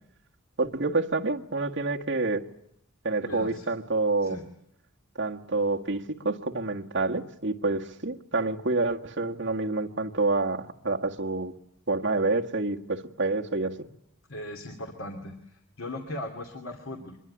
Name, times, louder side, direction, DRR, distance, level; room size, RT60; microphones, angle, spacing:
voice 1, 0.6-2.4 3.0-4.4 5.2-11.5 11.9-13.9, right 3 dB, 55° right, 1 dB, 1.6 m, -28 dB
voice 2, 3.2-3.7 4.2-4.4 14.3-17.2, left 1 dB, 70° left, 4 dB, 2.6 m, -38 dB
24.5 x 22.0 x 9.9 m, 0.74 s
head